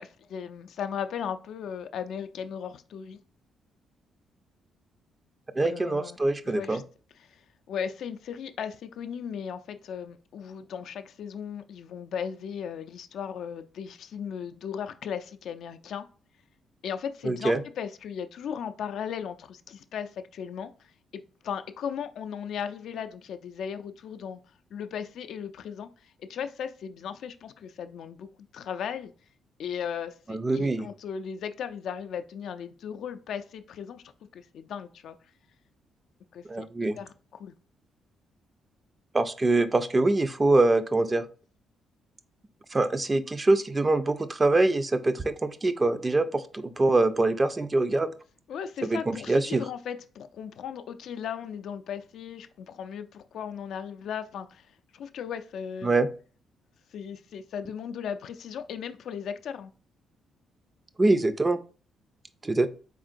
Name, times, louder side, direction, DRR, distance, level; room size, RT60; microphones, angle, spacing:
voice 1, 0.0-3.2 5.6-6.2 6.5-6.8 7.2-16.1 16.8-24.4 24.7-28.3 28.5-29.1 29.6-34.0 34.3-35.2 36.3-37.1 37.4-37.5 48.5-55.9 56.9-59.7, left 7 dB, 70° left, 0.3 m, -37 dB
voice 2, 5.6-6.8 17.2-17.6 30.3-30.9 36.5-37.0 39.1-41.3 42.7-48.1 48.8-49.6 55.8-56.1 61.0-61.6 62.4-62.7, right 2 dB, 25° right, 0.3 m, -24 dB
3.7 x 3.6 x 2.5 m
cardioid pair, 90°, 0 cm